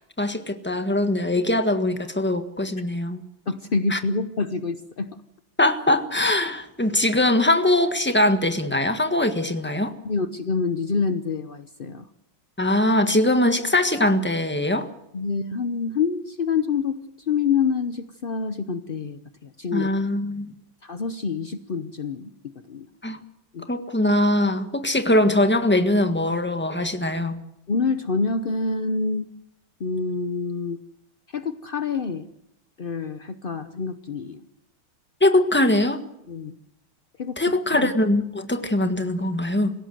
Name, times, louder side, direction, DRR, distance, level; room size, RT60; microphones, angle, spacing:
voice 1, 0.2-3.2 3.9-4.0 5.6-9.9 12.6-14.9 19.7-20.5 23.0-23.2 23.7-27.4 35.2-36.0 37.4-39.7, left 1 dB, 5° left, 8 dB, 1.3 m, -21 dB
voice 2, 3.5-5.2 10.0-12.1 15.1-19.9 20.8-22.3 22.7-22.9 23.5-23.7 27.7-29.3 29.8-30.8 31.3-32.3 32.8-34.4 36.3-36.5 37.2-37.5 37.8-37.9, left 5 dB, 60° left, 10 dB, 0.5 m, -27 dB
27.0 x 16.5 x 7.8 m, 0.83 s
omnidirectional pair, 2.3 m